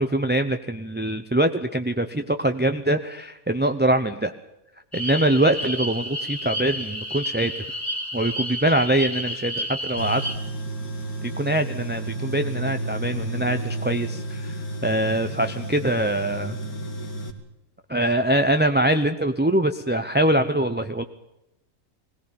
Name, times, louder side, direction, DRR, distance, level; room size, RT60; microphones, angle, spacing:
voice 1, 0.0-4.3 4.9-7.5 8.1-10.2 11.2-14.6 14.8-16.6 17.9-21.0, right 1 dB, 10° right, 7 dB, 0.6 m, -23 dB
sound 1, 4.9-10.4, equal, 10° left, 2.5 m, -31 dB
Tools, 10.0-17.3, right 1 dB, 80° left, 2.7 m, -31 dB
20.5 x 17.5 x 8.8 m, 0.86 s
omnidirectional pair, 1.5 m